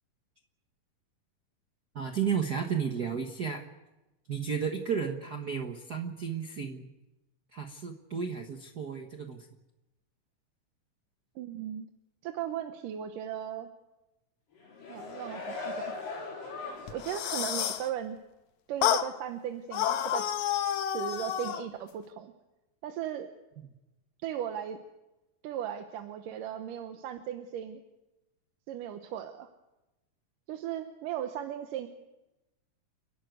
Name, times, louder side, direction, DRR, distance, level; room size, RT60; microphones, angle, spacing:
voice 1, 1.9-3.6 4.3-6.9 7.5-9.5, right 6 dB, 60° right, 3 dB, 1.0 m, -33 dB
voice 2, 11.4-11.9 12.2-13.7 14.9-15.9 16.9-18.2 18.7-20.2 20.9-22.3 22.8-23.3 24.2-24.8 25.4-27.8 28.7-29.5 30.5-31.9, right 10 dB, 80° right, 6 dB, 2.7 m, -37 dB
sound 1, 14.6-17.3 17.7-17.8, left 4 dB, 85° left, 6.2 m, -40 dB
sound 2, 16.9-17.9 18.8-19.1 19.7-21.7, left 10 dB, 70° left, 2.2 m, -29 dB
30.0 x 12.0 x 9.3 m, 1.0 s
omnidirectional pair, 3.8 m